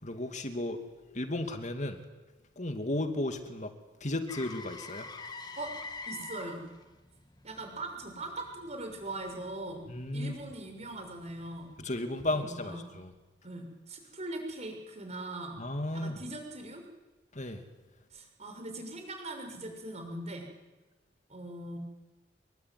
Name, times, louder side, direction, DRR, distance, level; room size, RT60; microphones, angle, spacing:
voice 1, 0.0-0.8 1.1-2.0 2.6-3.7 4.0-5.1 9.9-10.3 11.8-13.1 15.6-16.2 17.3-17.6, left 1 dB, 40° left, 7 dB, 2.6 m, -34 dB
Motor vehicle (road), 4.3-12.2 16.5-16.7, left 3 dB, 20° left, 2.2 m, -47 dB
voice 2, 6.1-6.7 7.4-11.7 12.3-12.9 13.4-15.6 15.9-16.8 18.1-20.5 21.3-21.8, right 2 dB, 35° right, 4 dB, 6.4 m, -41 dB
27.0 x 22.5 x 9.7 m, 1.1 s
head